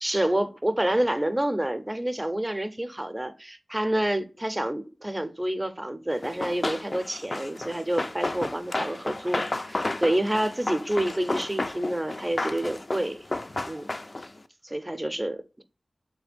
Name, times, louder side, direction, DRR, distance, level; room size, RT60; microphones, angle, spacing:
voice 1, 0.0-13.3 13.7-13.8 14.6-15.6, right 1 dB, 20° right, 0.5 m, -28 dB
Run, 6.2-14.4, left 2 dB, 40° left, 0.3 m, -32 dB
3.4 x 3.2 x 3.4 m
cardioid pair, 50°, 0 cm